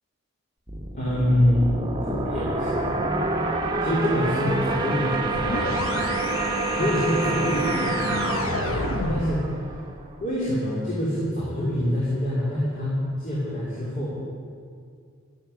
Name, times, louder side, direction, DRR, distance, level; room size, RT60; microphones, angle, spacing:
sound 1, 0.7-10.2, right 3 dB, 20° right, 1.2 m, -28 dB
voice 1, 0.9-2.9 3.8-6.2 6.7-9.4 10.2-14.2, left 1 dB, 40° left, -7 dB, 3.3 m, -26 dB
sound 2, 5.3-9.5, left 2 dB, 80° left, 1.0 m, -30 dB
12.5 x 11.5 x 7.9 m, 2.2 s
head